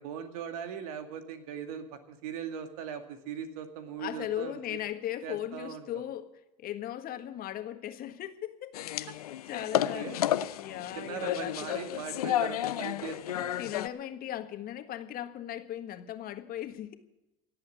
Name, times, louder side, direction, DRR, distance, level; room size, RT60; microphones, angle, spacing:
voice 1, 0.0-4.8 5.2-6.0 9.1-9.2 9.4-10.2 11.0-13.6, right 8 dB, 75° right, 2.2 m, -40 dB
voice 2, 4.0-9.1 9.5-10.3 10.6-11.9 13.6-16.9, left 12 dB, 55° left, 1.6 m, -38 dB
sound 1, 8.7-13.9, left 13 dB, 85° left, 0.6 m, -32 dB
18.0 x 8.1 x 9.4 m
hypercardioid pair, 75°, 19 cm